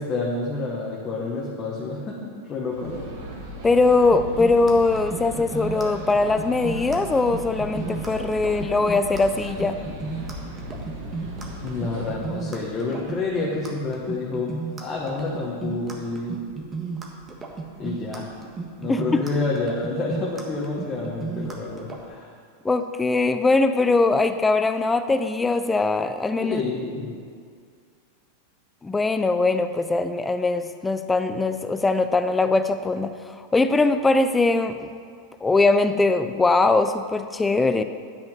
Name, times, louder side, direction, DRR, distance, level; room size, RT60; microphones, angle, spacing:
voice 1, 0.0-3.0 11.6-16.3 17.8-18.3 18.8-22.3 26.4-27.2, left 3 dB, 25° left, -4 dB, 1.5 m, -29 dB
sound 1, 2.7-12.2, right 1 dB, 65° right, 2.5 m, -37 dB
voice 2, 3.6-9.8 18.9-19.0 22.6-26.6 28.8-34.9 35.4-37.8, left 3 dB, 10° left, 9 dB, 0.5 m, -21 dB
sound 2, 4.1-22.0, right 4 dB, 20° right, 1.4 m, -34 dB
10.0 x 5.9 x 5.3 m, 2.2 s
hypercardioid pair, 120°, 0 cm